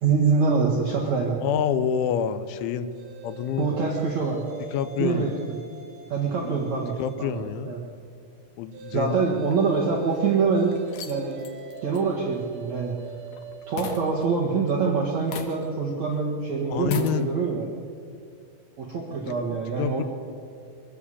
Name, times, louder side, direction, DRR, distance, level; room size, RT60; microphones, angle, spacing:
voice 1, 0.0-1.4 3.6-4.4 5.0-5.6 6.1-7.8 8.9-10.7 11.0-11.4 11.8-12.9 13.7-17.7 18.8-20.0, right 5 dB, 55° right, -3 dB, 2.2 m, -25 dB
voice 2, 1.4-2.9 3.2-3.9 4.7-5.3 6.4-6.6 7.0-7.7 8.6-9.4 16.7-17.3 19.1-19.4 19.8-20.0, left 8 dB, 90° left, 12 dB, 3.3 m, -28 dB
sound 1, 2.9-7.3 8.7-14.1, right 5 dB, 75° right, 4.4 m, -42 dB
sound 2, 9.5-10.2 10.7-13.5 13.8-14.8 15.3-15.9 16.1-16.2 16.8-17.2, left 6 dB, 65° left, 2.5 m, -39 dB
24.0 x 13.0 x 8.4 m, 2.4 s
omnidirectional pair, 5.3 m